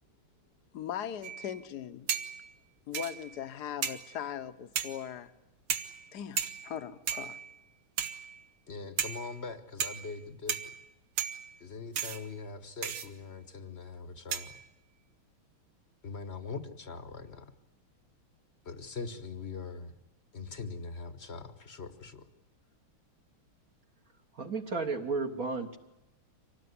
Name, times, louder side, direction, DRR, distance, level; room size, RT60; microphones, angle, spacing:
voice 1, 0.7-2.1 2.9-5.3 6.1-7.4, left 9 dB, 55° left, 1.4 m, -39 dB
sound 1, 1.2-1.6 2.1-2.5 2.9-3.4 3.8-4.2 4.7-5.1 5.7-6.1 6.4-6.8 7.1-7.6 8.0-8.4 9.0-9.4 9.8-10.2 10.5-10.8 11.2-11.6 11.9-12.3 12.8-13.1 14.3-14.6, right 8 dB, 75° right, 2.1 m, -35 dB
voice 2, 8.7-10.7 11.6-14.6 16.0-17.5 18.6-19.9 20.3-22.3, left 4 dB, 35° left, 1.3 m, -42 dB
voice 3, 24.3-25.8, right 3 dB, 45° right, 1.7 m, -33 dB
25.5 x 18.5 x 9.6 m
omnidirectional pair, 2.3 m